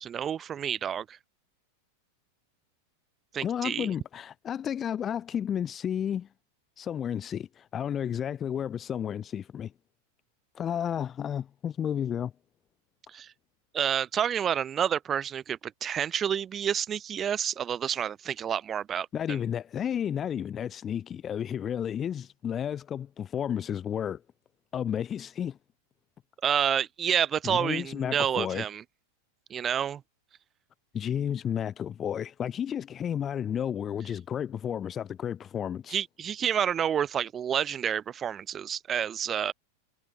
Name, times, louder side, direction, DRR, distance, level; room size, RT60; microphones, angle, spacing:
voice 1, 0.0-1.2 3.3-3.9 13.1-13.3 13.7-19.4 26.4-28.8 29.5-30.0 35.9-39.5, right 8 dB, 25° right, 1.1 m, -29 dB
voice 2, 3.4-6.3 6.8-9.7 10.5-12.3 19.1-24.2 24.7-25.6 27.4-28.6 30.9-36.0, left 9 dB, 25° left, 0.9 m, -32 dB
figure-of-eight pair, 90°, 0 cm